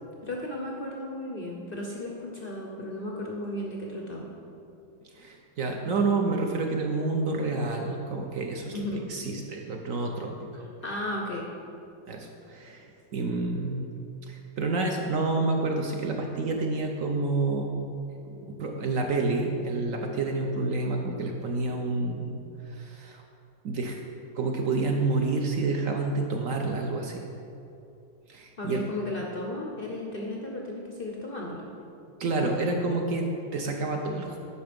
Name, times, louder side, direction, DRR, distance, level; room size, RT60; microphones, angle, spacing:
voice 1, 0.2-4.3 8.7-9.0 10.5-11.5 28.6-31.7, left 1 dB, 65° left, -1 dB, 0.5 m, -35 dB
voice 2, 5.1-10.6 12.1-12.9 13.1-13.9 14.3-17.7 18.2-22.3 22.6-23.2 23.6-24.0 24.3-27.2 28.3-28.8 32.2-34.4, right 3 dB, 65° right, 2 dB, 0.8 m, -29 dB
9.5 x 5.6 x 5.2 m, 2.7 s
omnidirectional pair, 2.1 m